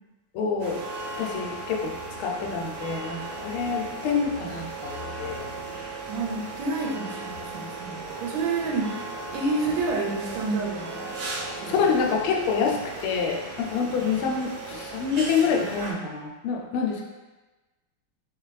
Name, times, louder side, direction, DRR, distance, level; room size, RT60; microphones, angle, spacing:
voice 1, 0.3-0.8 1.2-1.9 2.2-5.5 11.7-17.0, left 5 dB, 85° left, 1 dB, 1.4 m, -27 dB
sound 1, 0.6-15.9, right 3 dB, 90° right, 1.6 m, -37 dB
voice 2, 6.1-11.1 11.6-11.8, right 3 dB, 75° right, -2 dB, 1.2 m, -29 dB
4.2 x 2.4 x 3.1 m, 1.2 s
omnidirectional pair, 2.2 m